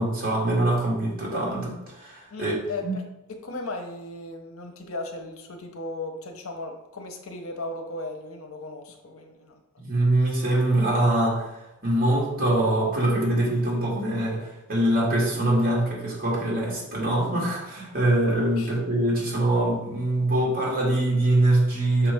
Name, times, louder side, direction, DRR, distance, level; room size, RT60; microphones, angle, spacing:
voice 1, 0.0-2.5 2.8-2.9 9.8-22.1, right 1 dB, 45° right, -4 dB, 2.1 m, -23 dB
voice 2, 2.3-3.0 3.3-9.6 18.6-18.7, left 2 dB, 70° left, 4 dB, 0.9 m, -36 dB
5.9 x 4.8 x 3.5 m, 0.95 s
head